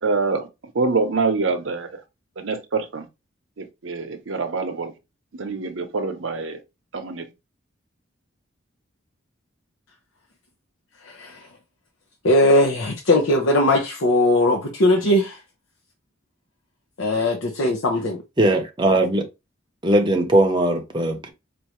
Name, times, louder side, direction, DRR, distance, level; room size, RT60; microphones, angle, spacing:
voice 1, 0.0-0.5 0.7-2.0 2.4-3.1 3.6-4.9 5.3-6.6 6.9-7.3, right 4 dB, 70° right, 0.7 m, -25 dB
voice 2, 11.0-11.5 12.2-15.4 17.0-18.2, left 1 dB, 80° left, 0.7 m, -19 dB
voice 3, 18.4-19.3 19.8-21.3, right 1 dB, 25° right, 0.8 m, -19 dB
4.6 x 2.5 x 3.0 m
head